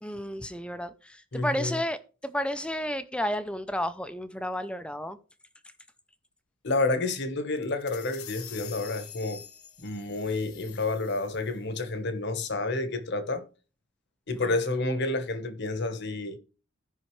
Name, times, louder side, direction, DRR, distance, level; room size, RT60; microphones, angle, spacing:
voice 1, 0.0-5.2, equal, 5° left, 0.6 m, -32 dB
voice 2, 1.3-1.8 6.6-9.4 9.8-13.4 14.3-16.4, left 2 dB, 50° left, 1.1 m, -29 dB
sound 1, 7.6-11.6, left 10 dB, 80° left, 1.1 m, -46 dB
16.0 x 5.6 x 3.1 m
head